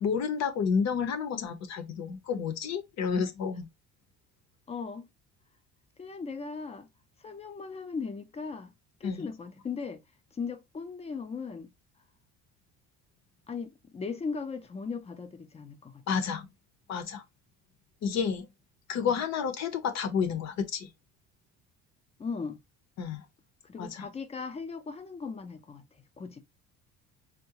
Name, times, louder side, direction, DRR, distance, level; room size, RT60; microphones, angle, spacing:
voice 1, 0.0-3.7 9.0-9.3 16.1-16.5 16.9-17.2 18.0-18.5 18.9-20.9 23.0-23.2 23.8-24.1, left 6 dB, 60° left, 0.8 m, -30 dB
voice 2, 4.7-5.1 6.0-6.9 7.2-8.7 9.0-10.0 10.3-11.7 13.5-16.0 19.0-19.1 22.2-22.6 23.6-25.8 26.2-26.4, left 5 dB, 20° left, 0.5 m, -38 dB
3.7 x 2.2 x 2.8 m
cardioid pair, 115°, 30 cm